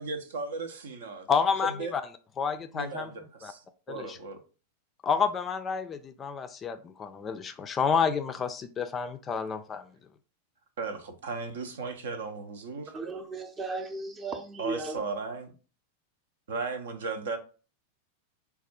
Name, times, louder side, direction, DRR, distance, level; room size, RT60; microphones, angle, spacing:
voice 1, 0.0-1.3 1.6-1.9 2.7-4.4 10.8-12.9 14.6-15.5 16.5-17.4, right 4 dB, 60° right, 0.6 m, -36 dB
voice 2, 1.3-2.0 2.4-3.1 3.4-3.5 3.9-4.2 5.0-9.9, left 6 dB, 20° left, 0.3 m, -29 dB
voice 3, 12.9-15.0, right 3 dB, 20° right, 0.6 m, -36 dB
4.1 x 2.3 x 4.1 m
figure-of-eight pair, 90°, 0 cm